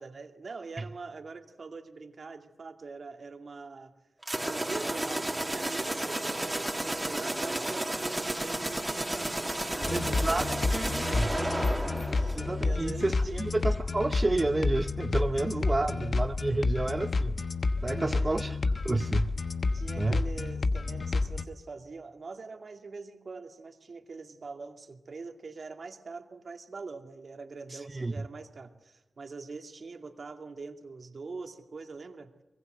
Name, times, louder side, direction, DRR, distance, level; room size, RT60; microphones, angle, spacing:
voice 1, 0.0-3.9 4.4-10.6 10.9-13.5 15.3-15.4 15.8-16.1 16.6-16.7 18.0-18.4 19.7-32.3, right 4 dB, 65° right, 5 dB, 2.3 m, -43 dB
sound 1, 4.2-12.9, right 1 dB, 20° right, 3.1 m, -32 dB
sound 2, 9.8-21.4, left 3 dB, 60° left, 1.1 m, -30 dB
voice 2, 9.9-11.3 12.3-17.4 17.8-19.3 20.0-20.2 27.7-28.2, right 2 dB, 35° right, 7 dB, 1.0 m, -30 dB
25.0 x 22.0 x 7.9 m, 1.0 s
cardioid pair, 40°, 0 cm